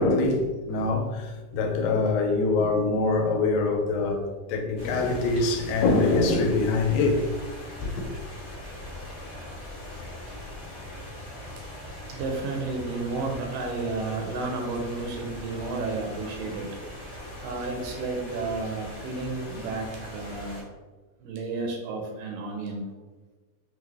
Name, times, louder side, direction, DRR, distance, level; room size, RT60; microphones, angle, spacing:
voice 1, 0.0-7.3 7.8-8.1, left 3 dB, 90° left, 2.3 m, -24 dB
sound 1, 4.8-20.6, left 1 dB, 50° left, 0.7 m, -40 dB
voice 2, 11.6-16.7 17.0-17.1 17.4-20.7 21.2-22.9, right 3 dB, 80° right, 2.1 m, -32 dB
5.8 x 2.0 x 3.3 m
omnidirectional pair, 3.9 m